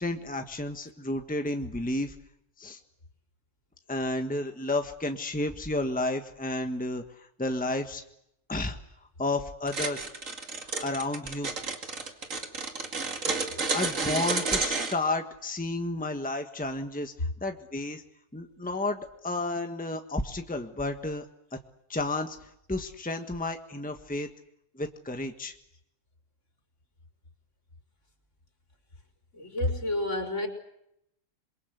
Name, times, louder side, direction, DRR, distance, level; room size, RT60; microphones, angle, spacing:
voice 1, 0.0-2.1 2.6-2.8 3.9-8.0 8.5-8.8 9.2-10.0 10.8-11.5 13.2-13.4 13.7-18.0 18.3-21.3 21.5-21.6 21.9-24.3 24.7-25.5, left 2 dB, 5° left, 5 dB, 1.4 m, -32 dB
sound 1, 9.7-14.9, right 4 dB, 90° right, 2.7 m, -30 dB
voice 2, 29.3-30.5, left 1 dB, 70° left, 2 dB, 4.9 m, -29 dB
27.0 x 23.0 x 8.1 m, 0.79 s
omnidirectional pair, 1.3 m